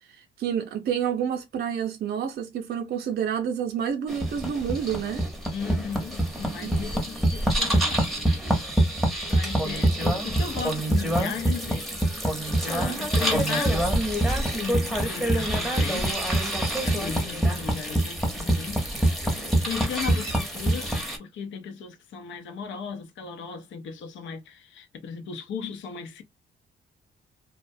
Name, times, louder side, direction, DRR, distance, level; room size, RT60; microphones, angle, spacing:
voice 1, 0.1-5.3 6.6-6.7, right 8 dB, 55° right, 0.5 m, -29 dB
sound 1, 4.1-21.2, right 1 dB, ahead, 0.7 m, -25 dB
voice 2, 5.5-8.1 9.3-11.9 12.1-12.3 12.6-13.8 14.6-16.2 16.8-18.8 19.3-19.4 19.6-26.2, left 6 dB, 70° left, 0.6 m, -36 dB
2.3 x 2.1 x 2.6 m
cardioid pair, 90°, 20 cm